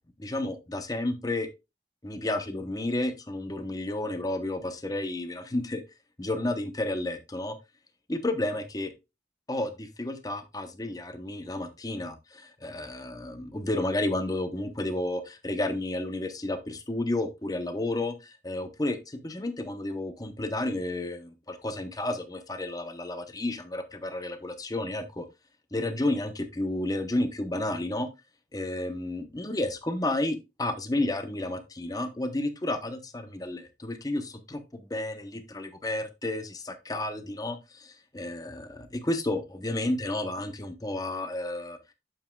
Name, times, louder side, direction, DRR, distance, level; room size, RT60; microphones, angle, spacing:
voice 1, 0.2-1.5 2.0-5.8 6.2-7.6 8.1-8.9 9.5-25.3 25.7-28.1 28.5-41.8, left 1 dB, 20° left, 8 dB, 0.8 m, -31 dB
8.9 x 7.1 x 2.3 m, 0.25 s
head